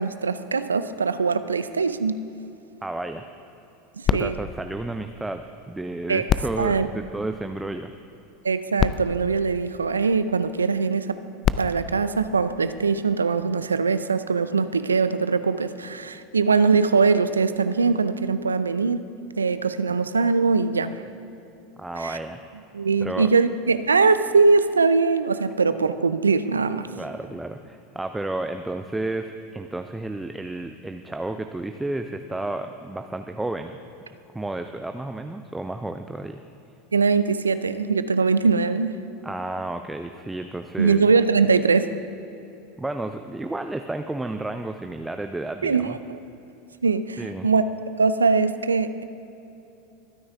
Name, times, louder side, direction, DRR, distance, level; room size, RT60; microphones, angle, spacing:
voice 1, 0.0-2.1 4.0-4.4 6.1-6.2 6.6-6.9 8.4-11.2 11.6-19.0 19.4-21.0 22.0-22.2 22.7-26.9 36.9-39.0 40.8-41.9 45.6-46.2 46.8-47.6 48.0-49.0, right 4 dB, 85° right, 12 dB, 0.5 m, -22 dB
voice 2, 2.8-3.3 4.1-7.9 21.8-22.4 23.0-23.3 27.0-33.8 34.3-36.4 39.2-41.1 42.8-46.0 47.2-47.5, right 2 dB, 10° right, 7 dB, 0.5 m, -32 dB
sound 1, 4.0-5.7 6.2-7.8 8.5-8.6 8.8-10.4 11.2-13.0 13.7-13.8, left 9 dB, 40° left, 0.4 m, -29 dB
22.5 x 9.6 x 3.6 m, 3.0 s
figure-of-eight pair, 85°, 0 cm